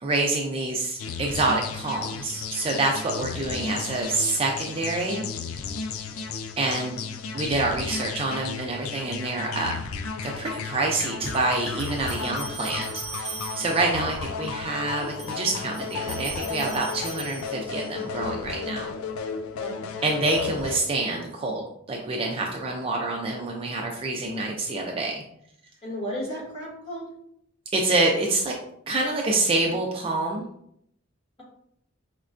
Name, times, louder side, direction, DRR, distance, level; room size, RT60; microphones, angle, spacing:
voice 1, 0.0-5.3 6.6-7.0 7.3-9.9 10.2-18.9 20.0-25.2 27.7-28.5 28.9-30.5, right 2 dB, 25° right, 0 dB, 0.4 m, -27 dB
sound 1, 1.0-20.8, left 5 dB, 80° left, 0.3 m, -34 dB
sound 2, 11.2-14.0 15.0-18.0, right 5 dB, ahead, 0.8 m, -40 dB
voice 2, 19.6-19.9 25.8-27.0, equal, 25° left, -6 dB, 1.4 m, -34 dB
5.0 x 2.2 x 2.4 m, 0.71 s
head